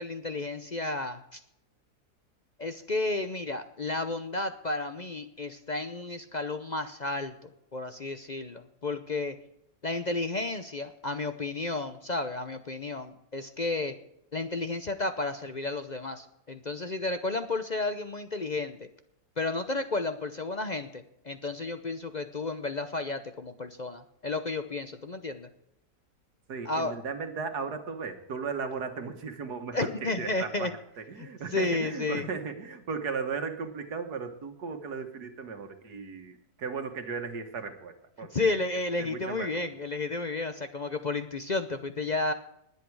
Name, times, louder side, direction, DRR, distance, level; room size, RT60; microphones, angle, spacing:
voice 1, 0.0-1.4 2.6-9.4 9.8-13.9 14.3-18.8 19.4-25.5 26.6-27.0 29.7-30.7 31.2-32.3 38.2-42.3, left 3 dB, 40° left, 9 dB, 0.6 m, -32 dB
voice 2, 26.5-30.7 31.0-38.6 39.0-39.7, right 5 dB, 85° right, 6 dB, 1.9 m, -36 dB
20.5 x 8.4 x 4.7 m, 0.79 s
omnidirectional pair, 1.7 m